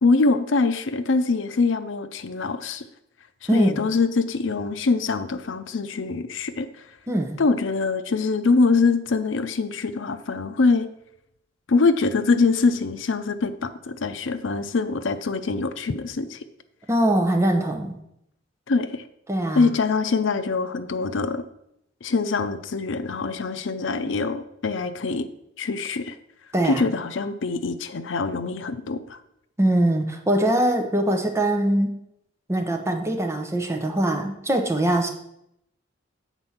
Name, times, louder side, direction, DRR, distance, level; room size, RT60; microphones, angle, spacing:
voice 1, 0.0-2.8 3.5-6.7 7.4-10.9 11.7-16.4 18.7-19.0 19.5-21.4 22.0-25.3 25.6-26.2 26.6-29.2, left 4 dB, 85° left, 11 dB, 0.6 m, -23 dB
voice 2, 3.5-3.9 7.1-7.4 16.9-18.0 19.3-19.7 26.5-26.8 29.6-31.9 32.5-35.1, right 1 dB, 15° right, 3 dB, 0.9 m, -22 dB
8.0 x 4.4 x 5.8 m, 0.78 s
head